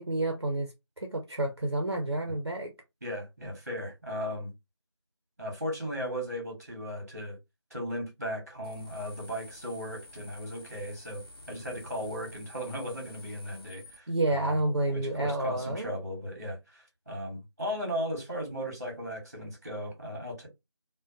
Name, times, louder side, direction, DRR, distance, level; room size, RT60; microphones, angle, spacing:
voice 1, 0.0-2.7 14.1-15.9, right 2 dB, 60° right, 0.6 m, -30 dB
voice 2, 3.0-4.5 5.4-7.4 7.7-11.2 11.5-20.5, equal, 35° right, 1.1 m, -36 dB
sound 1, 8.6-14.0, left 1 dB, 55° left, 0.7 m, -50 dB
2.5 x 2.1 x 2.5 m
figure-of-eight pair, 175°, 15 cm